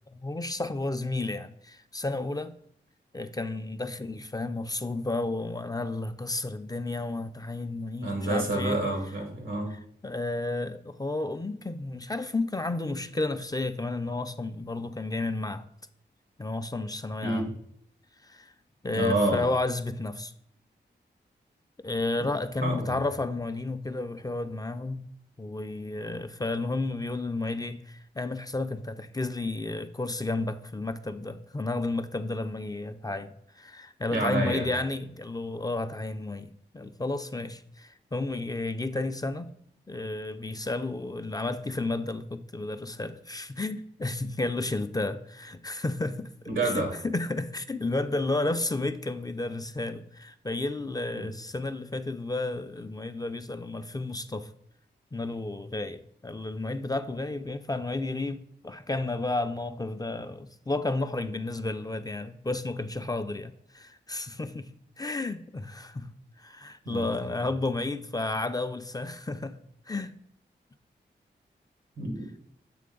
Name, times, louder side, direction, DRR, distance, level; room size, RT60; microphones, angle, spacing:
voice 1, 0.1-2.5 3.1-8.8 9.7-15.7 16.4-17.6 18.2-18.5 18.8-20.3 21.8-25.0 25.4-39.5 39.9-46.3 46.6-54.5 55.1-64.7 65.0-66.1 66.4-69.6 69.9-70.1, left 2 dB, 20° left, 0.4 m, -32 dB
voice 2, 8.0-9.7 17.2-17.4 18.9-19.4 22.6-22.9 34.1-34.7 46.5-46.9 51.2-51.3 66.8-67.1 72.0-72.4, right 2 dB, 90° right, 1.5 m, -28 dB
7.6 x 3.3 x 3.7 m
cardioid pair, 40°, 20 cm